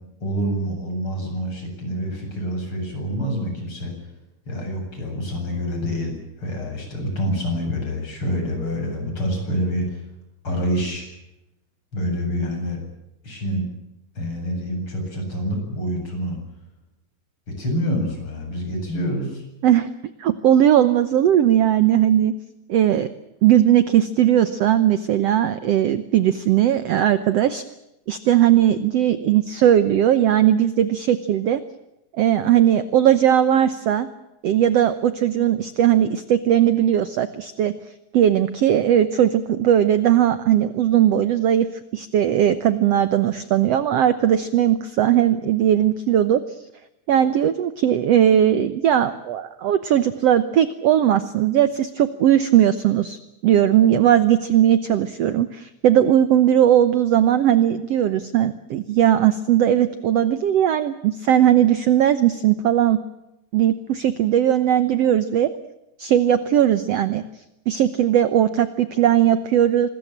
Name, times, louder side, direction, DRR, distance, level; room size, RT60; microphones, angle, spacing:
voice 1, 0.2-3.9 4.5-10.0 10.4-11.1 11.9-12.8 13.2-13.7 14.2-16.4 17.5-19.4, equal, 35° left, 3 dB, 8.9 m, -27 dB
voice 2, 20.2-22.3 22.7-23.1 23.4-27.6 28.1-31.6 32.2-34.1 34.4-37.7 38.1-41.7 41.9-46.4 47.1-63.0 63.5-65.5 66.0-67.2 67.7-69.9, right 11 dB, 70° right, 12 dB, 1.6 m, -18 dB
26.5 x 21.5 x 7.4 m, 0.88 s
omnidirectional pair, 4.0 m